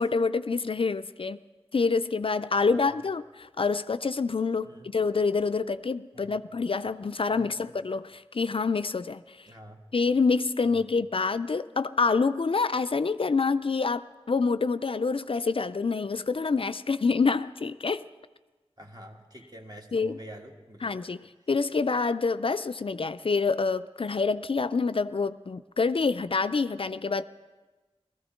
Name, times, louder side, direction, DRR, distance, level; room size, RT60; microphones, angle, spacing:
voice 1, 0.0-1.4 1.7-9.5 9.9-18.0 19.9-20.2 20.8-21.2 21.5-27.2, left 4 dB, 60° left, 12 dB, 0.4 m, -27 dB
voice 2, 2.5-3.0 4.6-4.9 6.1-6.5 7.3-7.7 9.5-9.8 10.6-10.9 18.8-21.0, equal, 40° right, 1 dB, 1.7 m, -47 dB
19.0 x 14.5 x 4.4 m, 1.2 s
wide cardioid pair, 45°, 11 cm